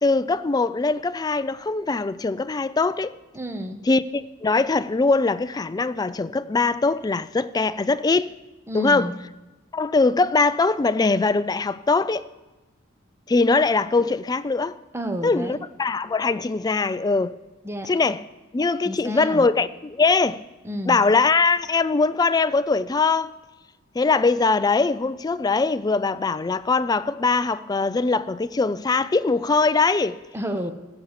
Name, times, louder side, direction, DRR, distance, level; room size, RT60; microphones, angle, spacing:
voice 1, 0.0-3.1 3.9-8.3 8.7-9.1 9.7-12.2 13.3-14.8 15.2-17.3 17.9-18.2 18.5-20.4 20.9-23.3 24.0-30.2, left 3 dB, 20° left, 0.3 m, -21 dB
voice 2, 3.3-3.8 8.7-9.2 14.9-15.7 17.6-17.9 18.8-19.5 20.6-21.0 30.3-30.7, equal, 10° right, 0.8 m, -30 dB
15.5 x 7.1 x 7.3 m
head